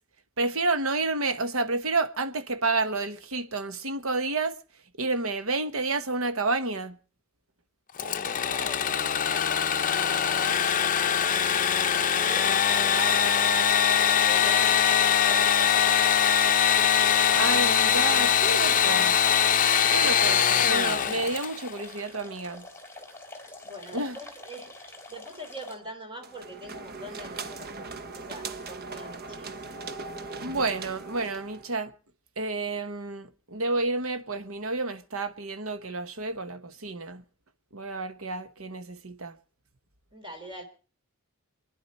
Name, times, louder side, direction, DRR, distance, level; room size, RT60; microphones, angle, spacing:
voice 1, 0.4-4.6 5.0-7.0 17.3-19.2 19.9-22.6 23.9-24.1 30.4-31.9 32.4-37.2 37.7-39.4, right 3 dB, 70° right, 1.2 m, -30 dB
Engine / Sawing, 8.0-21.7, left 8 dB, 40° left, 0.7 m, -22 dB
voice 2, 8.0-13.7 14.1-14.7 15.3-16.0 23.6-29.5 40.1-40.6, equal, 25° right, 3.6 m, -43 dB
sound 1, 9.6-25.8, left 2 dB, 10° left, 3.4 m, -45 dB
sound 2, 26.2-31.7, right 4 dB, 45° right, 1.1 m, -39 dB
27.5 x 10.5 x 4.2 m
head